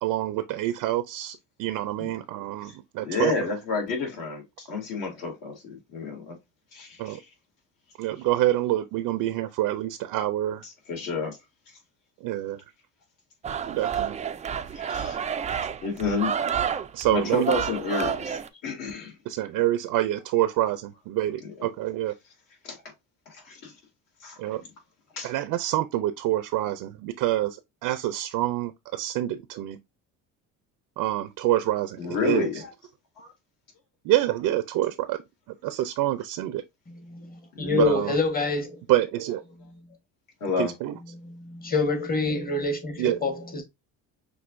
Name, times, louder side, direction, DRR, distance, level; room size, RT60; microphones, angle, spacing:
voice 1, 0.0-3.3 7.0-7.2 8.0-10.6 12.2-12.6 13.7-14.1 16.9-17.5 19.3-22.1 24.4-24.6 25.2-27.6 27.8-29.8 31.0-32.6 34.0-35.2 35.6-36.6 37.7-38.1 38.9-39.4 40.6-41.0 43.0-43.2, right 14 dB, 70° right, 0.6 m, -26 dB
voice 2, 3.0-6.3 6.7-7.2 10.9-11.4 14.7-15.2 15.8-16.3 17.1-19.1 21.4-21.5 22.6-22.8 23.3-23.7 24.2-24.4 25.1-25.3 32.0-32.7 33.2-33.3 37.6-37.9 40.4-40.7, left 4 dB, 60° left, 2.5 m, -30 dB
sound 1, 13.4-18.5, right 8 dB, 20° right, 0.3 m, -30 dB
voice 3, 37.1-38.8 41.2-43.6, left 3 dB, 25° left, 1.3 m, -27 dB
6.2 x 2.7 x 2.5 m
cardioid pair, 100°, 37 cm